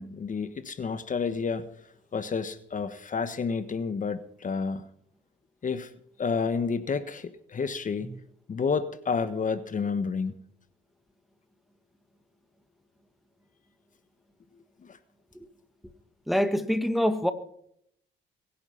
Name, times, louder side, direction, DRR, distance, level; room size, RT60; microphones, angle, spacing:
voice 1, 0.0-1.7 2.1-4.8 5.6-5.9 6.2-8.2 8.5-10.3 14.9-15.0, left 5 dB, 40° left, 1.3 m, -30 dB
voice 2, 16.3-17.3, equal, ahead, 1.5 m, -25 dB
22.5 x 10.0 x 5.7 m
cardioid pair, 90°, 20 cm